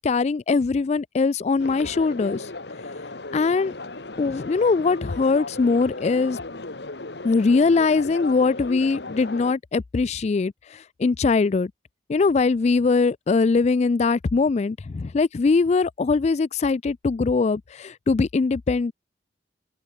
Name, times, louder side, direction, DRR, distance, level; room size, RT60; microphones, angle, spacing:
voice 1, 0.0-2.5 3.3-3.7 4.2-6.4 7.2-11.7 12.1-18.9, left 4 dB, 40° left, 0.3 m, -21 dB
sound 1, 1.6-9.5, left 2 dB, 65° left, 1.8 m, -36 dB
open air
head